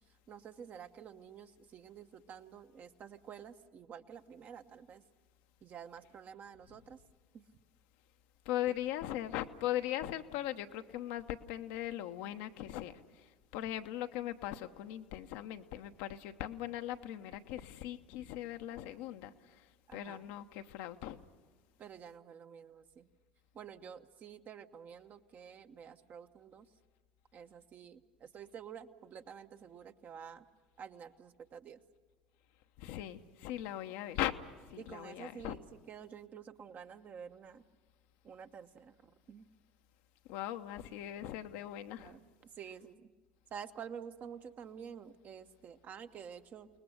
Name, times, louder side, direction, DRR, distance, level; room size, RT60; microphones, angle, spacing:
voice 1, 0.3-5.0 5.6-7.0 7.3-7.5 19.9-20.3 21.8-23.1 23.5-26.7 27.3-30.4 30.8-31.8 34.8-37.6 38.2-39.5 42.0-43.0 43.5-46.7, right 7 dB, 40° right, 8 dB, 1.1 m, -50 dB
voice 2, 8.4-19.7 19.9-21.2 32.8-34.3 34.7-35.6 40.3-42.2, left 13 dB, 65° left, 7 dB, 0.9 m, -39 dB
29.0 x 19.5 x 6.6 m, 1.4 s
figure-of-eight pair, 70°, 4 cm